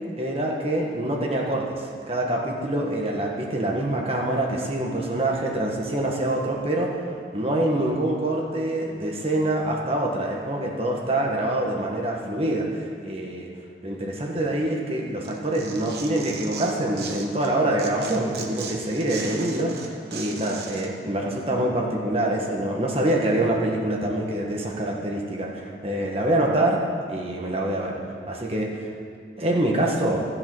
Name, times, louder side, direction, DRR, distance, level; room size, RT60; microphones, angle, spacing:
voice 1, 0.2-1.8 2.1-7.0 7.3-13.5 13.8-26.8 27.1-28.0 28.3-28.9 29.4-30.2, right 1 dB, 35° right, -1 dB, 1.5 m, -25 dB
Tearing, 15.2-17.5 17.8-20.9, right 5 dB, 65° right, 1.1 m, -37 dB
12.5 x 8.0 x 6.2 m, 2.2 s
head